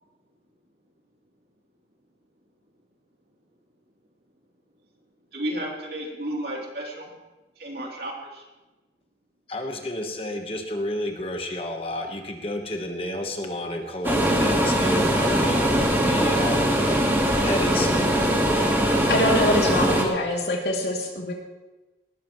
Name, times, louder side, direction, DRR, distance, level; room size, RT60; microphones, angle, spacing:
voice 1, 5.3-7.1 7.6-8.4, right 1 dB, 60° right, -2 dB, 3.1 m, -32 dB
voice 2, 9.5-15.7 16.0-16.6 17.4-17.9, left 1 dB, 30° left, 3 dB, 1.2 m, -31 dB
sound 1, 14.0-20.0, equal, 10° right, 1.7 m, -21 dB
voice 3, 19.1-21.3, left 1 dB, 70° left, 0 dB, 2.6 m, -24 dB
19.0 x 13.5 x 3.1 m, 1.1 s
head